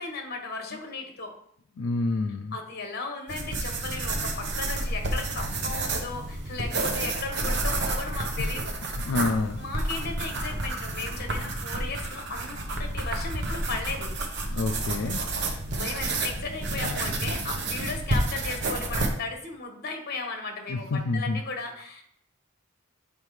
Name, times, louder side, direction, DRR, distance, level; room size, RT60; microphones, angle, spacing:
voice 1, 0.0-1.3 2.5-8.7 9.6-14.1 15.4-22.0, left 3 dB, 50° left, 3 dB, 1.3 m, -36 dB
voice 2, 1.8-2.5 9.1-9.6 14.5-15.2 16.7-17.0 17.8-18.0 20.7-21.4, left 3 dB, 70° left, 5 dB, 0.4 m, -28 dB
sound 1, 3.3-19.1, right 2 dB, 55° right, 1.0 m, -30 dB
7.3 x 5.0 x 3.2 m, 0.67 s
head